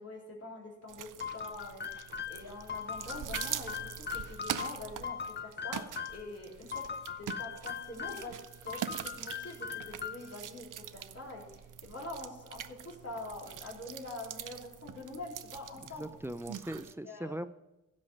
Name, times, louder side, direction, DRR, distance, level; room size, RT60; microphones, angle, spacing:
voice 1, 0.0-6.8 7.2-8.3 8.6-16.1 17.0-17.3, left 2 dB, 50° left, -3 dB, 3.7 m, -45 dB
sound 1, 0.9-16.9, right 9 dB, 75° right, 0.5 m, -44 dB
sound 2, 1.2-6.3 6.7-8.3 8.7-10.4, left 7 dB, 35° left, 0.6 m, -40 dB
voice 2, 15.8-17.5, right 1 dB, 10° right, 13 dB, 0.4 m, -40 dB
16.0 x 5.4 x 5.3 m, 0.93 s
wide cardioid pair, 80°, 32 cm